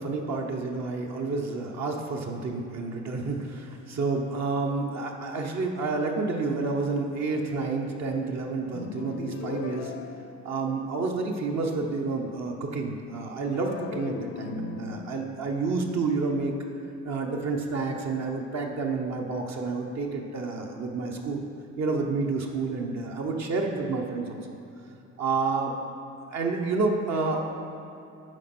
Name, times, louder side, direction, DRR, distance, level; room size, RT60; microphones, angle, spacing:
voice 1, 0.0-9.9 10.4-16.5 17.0-21.4 21.8-24.4 25.2-25.8 26.3-27.5, right 3 dB, 60° right, 1 dB, 1.0 m, -29 dB
sound 1, 8.7-11.1 13.5-16.9, left 7 dB, 50° left, 0.5 m, -39 dB
9.6 x 4.2 x 6.0 m, 2.8 s
cardioid pair, 90°, 30 cm